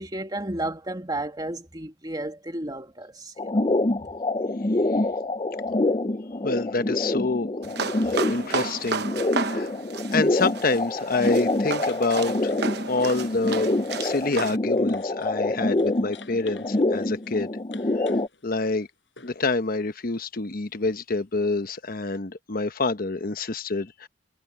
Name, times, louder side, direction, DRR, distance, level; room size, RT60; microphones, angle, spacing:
voice 1, 0.0-3.7, right 1 dB, 25° right, 2.3 m, -33 dB
sound 1, 3.4-18.3, left 2 dB, 30° left, 0.7 m, -26 dB
voice 2, 6.4-7.5 8.0-9.1 9.3-9.7 10.1-12.5 12.8-13.7 14.0-17.5 18.0-18.1 18.4-18.9 19.2-24.1, left 3 dB, 55° left, 1.0 m, -27 dB
sound 2, 7.6-14.6, right 5 dB, 65° right, 1.0 m, -33 dB
sound 3, 7.9-8.2 10.5-15.4 15.7-19.5 22.1-22.2, left 5 dB, 75° left, 6.2 m, -52 dB
head